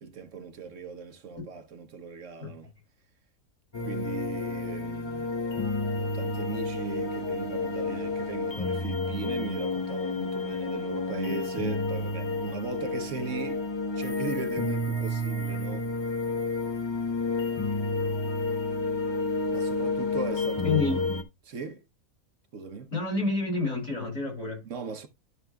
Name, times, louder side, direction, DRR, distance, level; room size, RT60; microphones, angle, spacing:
voice 1, 0.0-2.7 3.8-5.4 6.0-13.6 13.9-15.9 19.5-21.2 21.4-21.8 22.5-22.9 24.6-25.1, right 4 dB, 60° right, 1.2 m, -38 dB
sound 1, 3.7-21.2, left 2 dB, 25° left, 0.7 m, -30 dB
voice 2, 20.6-21.0 22.9-24.6, left 3 dB, 65° left, 5.9 m, -28 dB
12.5 x 5.9 x 2.3 m
omnidirectional pair, 1.5 m